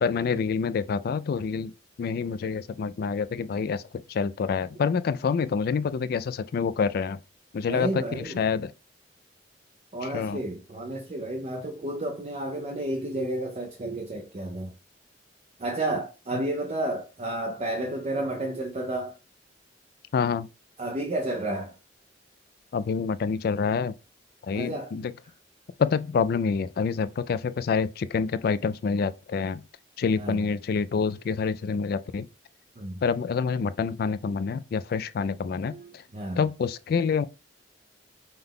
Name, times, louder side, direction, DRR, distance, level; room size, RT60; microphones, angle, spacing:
voice 1, 0.0-1.7 2.0-3.8 4.1-7.2 7.5-8.7 10.0-10.4 16.3-16.4 20.1-20.5 22.7-23.9 24.4-25.1 25.8-29.6 30.0-32.3 33.0-36.0 36.4-37.3, left 5 dB, 55° left, 0.3 m, -27 dB
voice 2, 7.7-8.4 9.9-14.7 15.6-19.1 20.8-21.7 24.5-24.9 30.2-30.4 32.8-33.0 35.7-36.4, right 1 dB, 35° right, 0.6 m, -31 dB
5.5 x 2.3 x 3.5 m
head